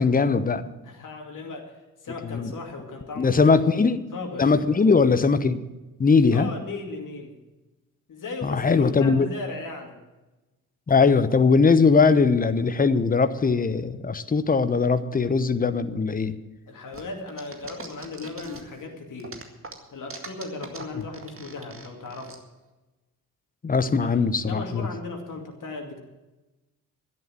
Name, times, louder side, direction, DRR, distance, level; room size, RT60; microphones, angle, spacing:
voice 1, 0.0-0.7 2.2-2.5 3.2-4.0 4.4-5.6 6.0-6.5 8.4-9.3 10.9-16.4 23.6-24.9, left 4 dB, 20° left, 13 dB, 0.9 m, -20 dB
voice 2, 0.8-1.8 2.0-3.6 4.1-4.6 6.3-7.4 8.1-10.0 16.7-19.4 19.9-22.3 23.8-26.0, left 3 dB, 45° left, 2 dB, 2.5 m, -37 dB
sound 1, 16.9-18.8 19.2-22.4, right 4 dB, 30° right, 2.0 m, -41 dB
12.0 x 10.5 x 7.4 m, 1.1 s
figure-of-eight pair, 40°, 44 cm